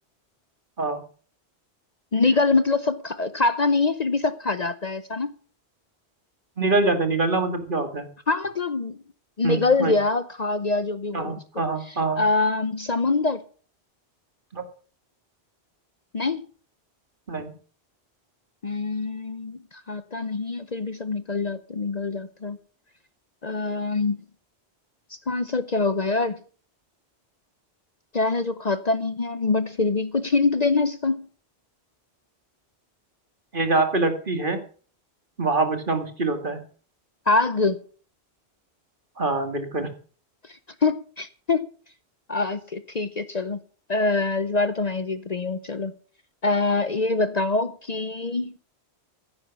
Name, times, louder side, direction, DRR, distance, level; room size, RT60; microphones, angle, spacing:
voice 1, 2.1-5.3 8.3-9.0 9.4-11.4 11.9-13.4 16.1-16.4 18.6-22.6 23.4-24.2 25.1-26.4 28.1-31.3 37.3-37.8 40.8-41.7 42.3-43.6 43.9-45.9 46.4-48.6, left 3 dB, 40° left, 0.8 m, -24 dB
voice 2, 6.6-8.1 9.4-9.9 11.1-12.2 14.5-14.6 17.3-17.5 33.5-34.6 35.4-36.6 39.2-39.9, right 3 dB, 50° right, 2.3 m, -24 dB
15.5 x 9.7 x 5.9 m
omnidirectional pair, 1.1 m